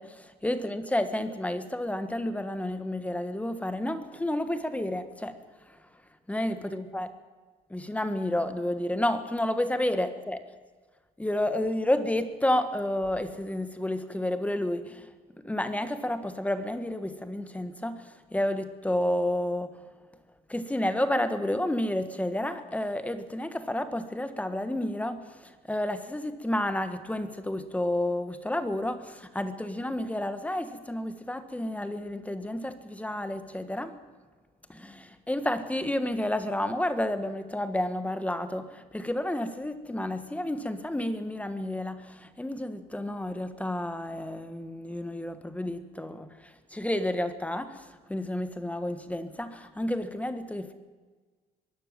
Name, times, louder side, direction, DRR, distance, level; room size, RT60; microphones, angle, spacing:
voice 1, 0.0-5.4 5.7-5.8 6.3-7.1 7.7-10.4 11.2-15.1 15.4-19.7 20.5-34.0 34.7-50.7, left 1 dB, 10° left, 10 dB, 1.5 m, -30 dB
22.0 x 17.0 x 7.5 m, 1.4 s
cardioid pair, 110°, 17 cm